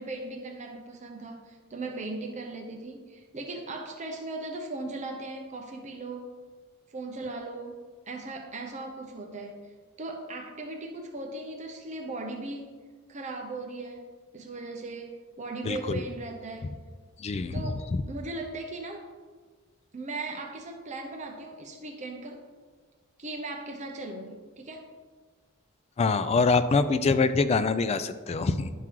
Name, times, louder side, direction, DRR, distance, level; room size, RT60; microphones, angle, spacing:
voice 1, 0.0-6.4 6.9-7.8 8.1-9.7 10.0-12.8 13.1-14.0 14.3-16.7 17.5-19.0 19.9-22.4 23.2-24.9, right 2 dB, 30° right, 2 dB, 0.7 m, -38 dB
voice 2, 15.6-16.0 17.2-18.0 26.0-28.7, left 4 dB, 30° left, 12 dB, 0.3 m, -25 dB
10.5 x 3.7 x 4.6 m, 1.5 s
head